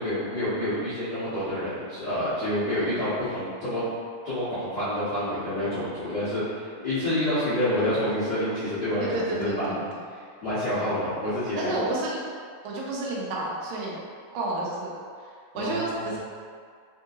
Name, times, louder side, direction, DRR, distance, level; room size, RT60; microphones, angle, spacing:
voice 1, 0.0-3.8 4.2-9.8 10.4-11.9 15.5-16.2, left 1 dB, 90° left, -16 dB, 0.9 m, -28 dB
voice 2, 2.7-3.0 9.0-9.8 10.8-11.0 11.6-12.2 12.6-14.0 14.3-16.2, right 2 dB, 85° right, -4 dB, 2.3 m, -31 dB
5.4 x 2.7 x 2.5 m, 2.1 s
omnidirectional pair, 4.0 m